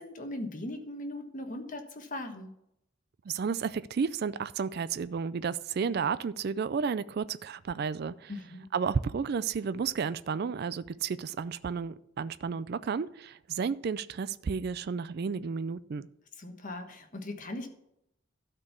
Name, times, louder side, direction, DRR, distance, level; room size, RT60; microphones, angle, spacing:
voice 1, 0.0-2.5 8.3-8.7 16.4-17.7, left 1 dB, 40° left, 1.4 m, -39 dB
voice 2, 3.3-8.3 8.7-16.1, right 6 dB, 50° right, 0.4 m, -32 dB
12.5 x 4.5 x 6.9 m
head